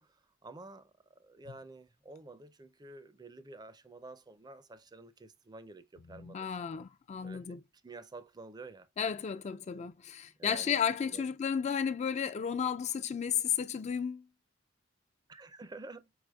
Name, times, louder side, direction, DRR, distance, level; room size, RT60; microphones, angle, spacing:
voice 1, 0.0-6.8 7.2-7.6 7.8-8.9 10.4-10.8 11.1-11.3 15.3-16.1, right 3 dB, 20° right, 0.5 m, -50 dB
voice 2, 6.1-7.6 9.0-14.3, left 7 dB, 35° left, 0.3 m, -33 dB
4.8 x 4.4 x 2.3 m
head